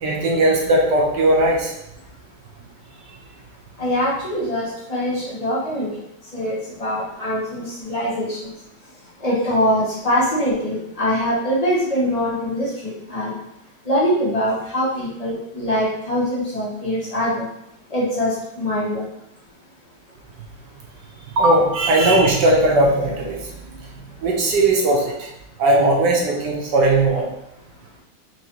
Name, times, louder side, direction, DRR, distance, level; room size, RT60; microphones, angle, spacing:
voice 1, 0.0-1.7 21.4-23.5 24.2-25.3 25.6-27.3, right 1 dB, 70° right, -1 dB, 1.3 m, -18 dB
voice 2, 3.8-5.9 6.3-8.5 9.2-13.3 13.9-17.5 17.9-19.0, equal, 50° left, -6 dB, 0.4 m, -23 dB
4.4 x 2.9 x 2.9 m, 0.81 s
omnidirectional pair, 2.1 m